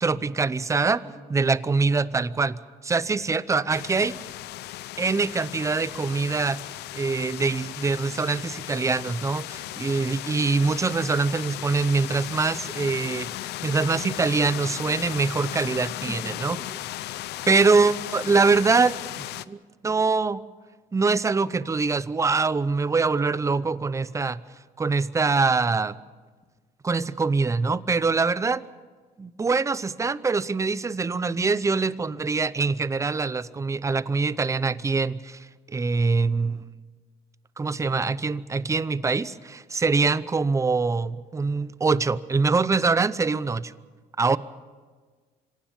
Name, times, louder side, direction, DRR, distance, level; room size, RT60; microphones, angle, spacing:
voice 1, 0.0-1.0 1.3-4.2 5.0-6.6 6.9-13.3 13.6-16.6 17.5-19.0 19.5-20.4 20.9-24.4 24.8-25.9 26.8-28.6 29.2-36.6 37.6-43.7 44.2-44.4, right 4 dB, 20° right, 17 dB, 0.6 m, -24 dB
sound 1, 3.7-19.5, left 15 dB, 80° left, 0.7 m, -36 dB
voice 2, 16.1-16.7, left 1 dB, 10° left, 3 dB, 2.9 m, -42 dB
26.0 x 17.0 x 7.2 m, 1.4 s
cardioid pair, 110°, 17 cm